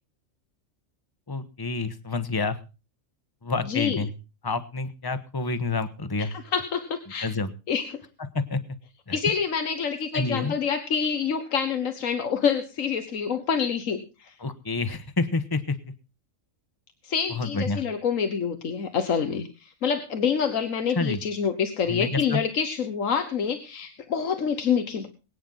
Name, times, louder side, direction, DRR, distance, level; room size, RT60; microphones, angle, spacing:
voice 1, 1.3-2.6 3.4-4.1 4.4-6.4 7.2-7.5 8.2-8.6 9.1-9.2 10.1-10.5 14.4-15.8 17.3-17.8 20.9-21.2 21.9-22.4, left 3 dB, 20° left, 11 dB, 1.1 m, -28 dB
voice 2, 3.7-4.0 6.2-7.3 7.7-8.0 9.1-14.3 17.0-25.1, left 6 dB, 90° left, 8 dB, 1.7 m, -27 dB
22.5 x 9.2 x 3.9 m, 0.31 s
omnidirectional pair, 1.3 m